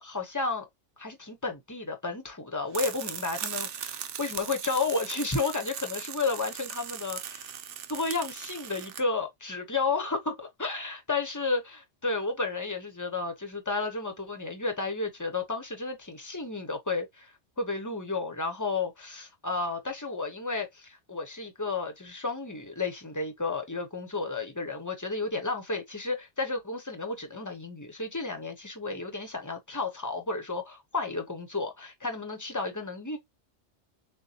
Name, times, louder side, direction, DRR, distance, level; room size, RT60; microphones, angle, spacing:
voice 1, 0.0-0.7 1.0-7.5 7.9-33.2, left 3 dB, 20° left, 0.8 m, -32 dB
sound 1, 2.7-9.0, right 9 dB, 90° right, 1.0 m, -38 dB
6.7 x 2.3 x 2.8 m
omnidirectional pair, 1.2 m